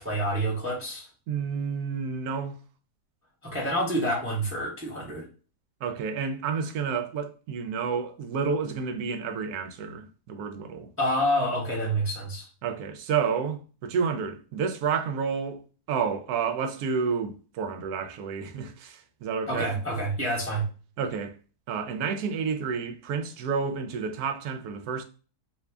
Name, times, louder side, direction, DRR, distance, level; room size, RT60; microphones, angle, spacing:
voice 1, 0.0-1.1 3.4-5.3 11.0-12.5 19.5-20.7, equal, 20° right, 0.4 m, -28 dB
voice 2, 1.3-2.5 5.8-10.9 12.6-15.6 15.9-19.8 21.0-21.4 21.7-25.0, right 6 dB, 75° right, 1.1 m, -30 dB
2.7 x 2.6 x 3.3 m
omnidirectional pair, 1.7 m